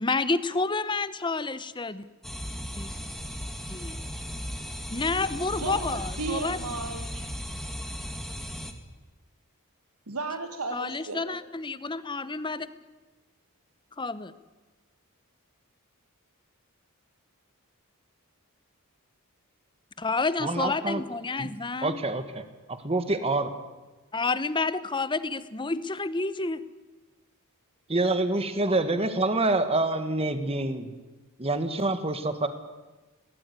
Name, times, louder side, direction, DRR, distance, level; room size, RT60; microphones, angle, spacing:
voice 1, 0.0-2.1 2.8-2.9 3.7-4.0 4.9-6.6 10.7-12.7 14.0-14.3 20.0-22.0 24.1-26.6, left 3 dB, 20° left, 15 dB, 0.9 m, -29 dB
sound 1, 2.2-8.7, equal, ahead, 1.8 m, -36 dB
voice 2, 5.5-7.3 10.1-11.4, right 3 dB, 75° right, 6 dB, 1.5 m, -34 dB
voice 3, 20.4-21.0 21.4-21.5 21.8-22.4 22.7-23.5 27.9-30.9 31.4-32.5, right 2 dB, 25° right, 9 dB, 1.6 m, -26 dB
21.5 x 17.5 x 9.6 m, 1.2 s
head